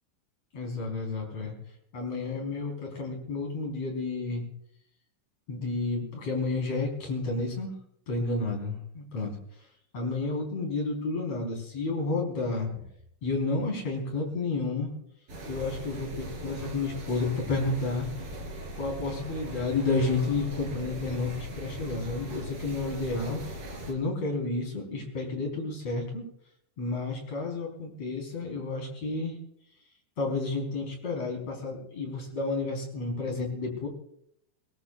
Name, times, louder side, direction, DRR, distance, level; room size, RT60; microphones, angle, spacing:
voice 1, 0.5-1.5 1.9-4.4 5.5-7.7 8.1-9.3 9.9-12.7 13.2-14.9 15.5-18.1 18.7-23.4 23.9-26.2 26.8-29.4 30.2-33.9, left 3 dB, 50° left, 0 dB, 5.5 m, -31 dB
sound 1, 15.3-23.9, equal, 40° right, 4.0 m, -40 dB
22.5 x 19.5 x 2.5 m, 0.72 s
omnidirectional pair, 3.9 m